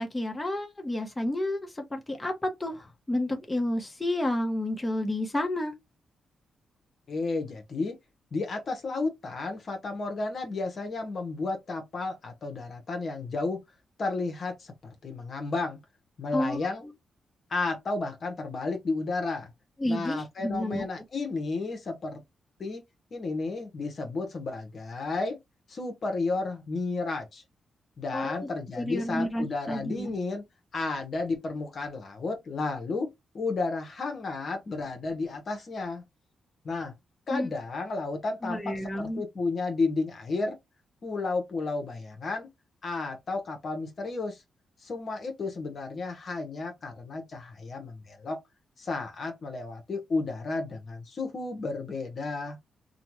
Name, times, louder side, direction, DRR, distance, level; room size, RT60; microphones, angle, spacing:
voice 1, 0.0-5.7 16.3-16.7 19.8-20.8 28.1-28.5 28.8-30.1 37.3-37.5 38.4-39.2, left 1 dB, 20° left, 0.9 m, -30 dB
voice 2, 7.1-8.0 8.3-13.6 14.0-14.7 15.0-15.8 16.2-16.8 17.5-19.5 19.9-22.2 22.6-22.8 23.1-25.4 25.7-27.4 28.0-30.4 30.7-36.0 36.6-36.9 37.3-40.6 41.0-42.5 42.8-44.4 44.8-48.4 48.8-52.6, left 3 dB, 55° left, 0.9 m, -32 dB
2.6 x 2.2 x 3.0 m
cardioid pair, 65°, 0 cm